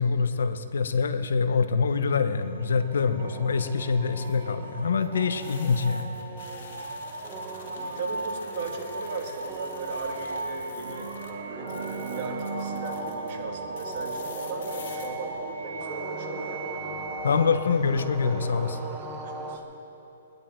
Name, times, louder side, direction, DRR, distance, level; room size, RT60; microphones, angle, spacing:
voice 1, 0.0-6.1 17.2-18.8, left 5 dB, 85° left, 11 dB, 0.9 m, -25 dB
sound 1, 1.7-2.2 4.0-11.3 11.6-13.3 13.8-15.1, left 5 dB, 60° left, 2.4 m, -49 dB
sound 2, 1.9-19.4, right 2 dB, 75° right, 3.4 m, -38 dB
sound 3, 3.2-19.6, right 2 dB, 15° right, 1.1 m, -40 dB
voice 2, 6.6-6.9 7.8-11.1 11.4-16.6 19.1-19.6, right 4 dB, 45° right, 1 dB, 2.2 m, -37 dB
22.0 x 11.0 x 4.6 m, 3.0 s
hypercardioid pair, 155°, 0 cm